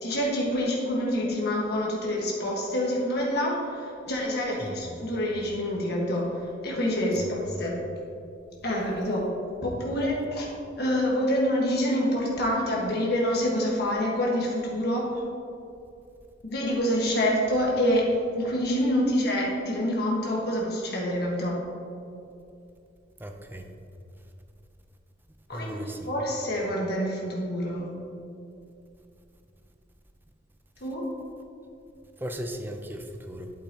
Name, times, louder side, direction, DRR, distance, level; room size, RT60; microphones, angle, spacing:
voice 1, 0.0-7.7 8.6-9.3 9.6-10.5 10.8-15.1 16.5-18.1 18.3-21.6 25.5-27.9 30.8-31.1, equal, 60° left, -3 dB, 1.4 m, -27 dB
voice 2, 4.6-5.0 7.1-7.6 23.2-23.7 25.5-26.1 32.2-33.5, right 1 dB, 10° right, 5 dB, 0.5 m, -37 dB
8.7 x 8.1 x 2.8 m, 2.6 s
head